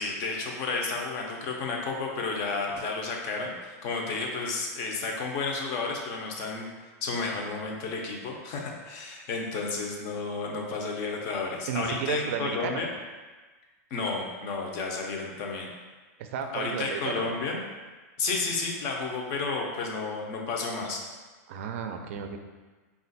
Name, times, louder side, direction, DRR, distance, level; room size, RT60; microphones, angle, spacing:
voice 1, 0.0-6.7 7.0-12.9 13.9-15.7 16.5-17.6 18.2-21.0, left 4 dB, 35° left, 0 dB, 0.6 m, -32 dB
voice 2, 11.7-12.9 16.2-17.4 21.5-22.4, right 7 dB, 50° right, 5 dB, 0.4 m, -33 dB
4.2 x 2.4 x 4.0 m, 1.3 s
supercardioid pair, 170°, 9 cm